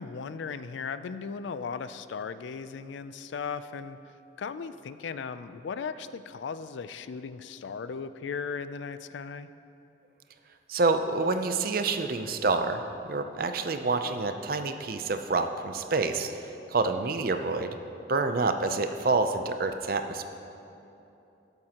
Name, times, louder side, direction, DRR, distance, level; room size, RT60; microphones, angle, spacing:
voice 1, 0.0-4.0 4.4-9.5, left 5 dB, 75° left, 13 dB, 0.4 m, -37 dB
voice 2, 10.7-17.8 18.1-20.2, right 3 dB, 50° right, 8 dB, 0.5 m, -28 dB
12.5 x 12.0 x 2.9 m, 2.9 s
head